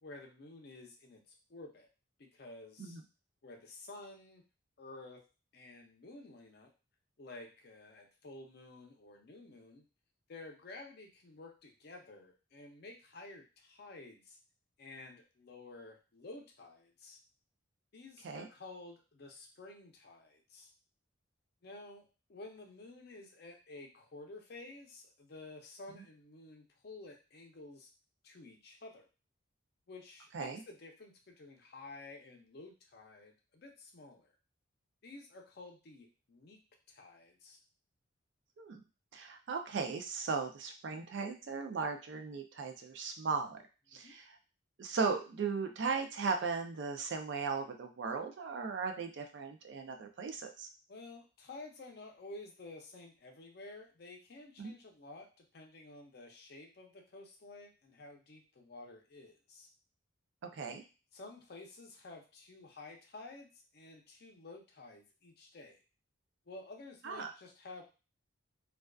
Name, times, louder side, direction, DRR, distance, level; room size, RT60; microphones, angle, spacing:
voice 1, 0.0-1.9 2.2-3.0 3.4-4.4 4.8-5.3 5.5-6.7 7.2-9.9 10.3-14.4 14.8-17.2 17.9-20.7 21.6-27.9 28.2-29.1 29.9-34.3 35.0-36.6 36.9-37.6 44.0-44.1 50.9-59.7 61.1-65.8 66.5-67.8, left 2 dB, 50° left, 2 dB, 0.5 m, -52 dB
voice 2, 39.1-43.6 43.9-44.3 44.8-50.7 54.6-54.7 60.5-60.8 67.0-67.3, right 5 dB, 60° right, 5 dB, 0.4 m, -37 dB
2.4 x 2.3 x 2.2 m, 0.32 s
head